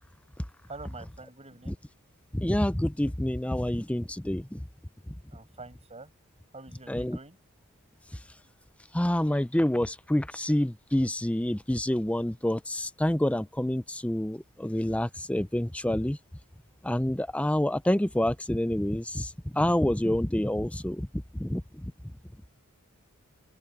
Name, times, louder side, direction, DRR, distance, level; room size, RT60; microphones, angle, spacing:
voice 1, 0.7-1.8 5.3-6.1 6.5-7.4, right 3 dB, 30° right, 7.8 m, -46 dB
voice 2, 2.3-4.6 6.9-7.2 8.9-16.2 16.8-21.9, left 1 dB, 5° left, 0.6 m, -28 dB
open air
head